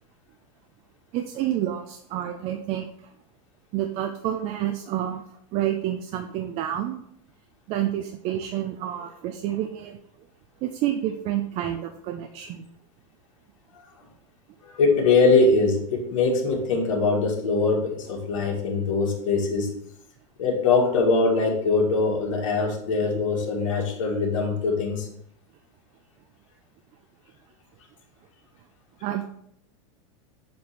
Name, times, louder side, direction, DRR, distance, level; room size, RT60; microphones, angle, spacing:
voice 1, 1.1-3.1 3.7-5.2 5.5-7.0 7.7-10.0 10.6-12.7 29.0-29.2, right 12 dB, 40° right, 6 dB, 0.5 m, -29 dB
voice 2, 14.6-19.7 20.4-25.1, left 3 dB, 80° left, 0 dB, 1.8 m, -22 dB
7.2 x 3.1 x 4.2 m, 0.72 s
supercardioid pair, 140°, 17 cm